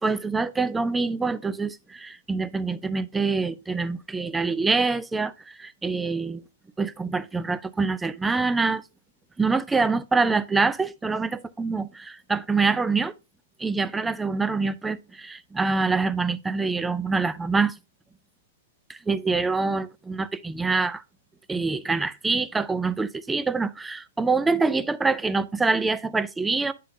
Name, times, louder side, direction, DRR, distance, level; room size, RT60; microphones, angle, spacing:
voice 1, 0.0-6.4 6.8-8.8 9.4-13.1 13.6-17.7 18.9-21.0 21.5-26.7, right 4 dB, 10° right, 0.4 m, -25 dB
9.8 x 3.7 x 2.7 m
hypercardioid pair, 130°, 0 cm